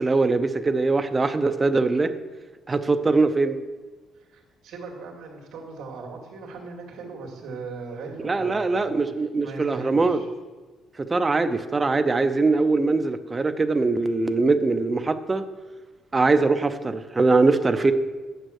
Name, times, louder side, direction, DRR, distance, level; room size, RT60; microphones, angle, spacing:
voice 1, 0.0-2.1 2.7-3.6 8.2-10.2 11.0-15.5 16.1-17.9, right 3 dB, 20° right, 9 dB, 0.6 m, -22 dB
voice 2, 4.3-10.3, right 4 dB, 70° right, 1 dB, 2.3 m, -39 dB
9.0 x 7.4 x 6.5 m, 1.3 s
cardioid pair, 145°, 0 cm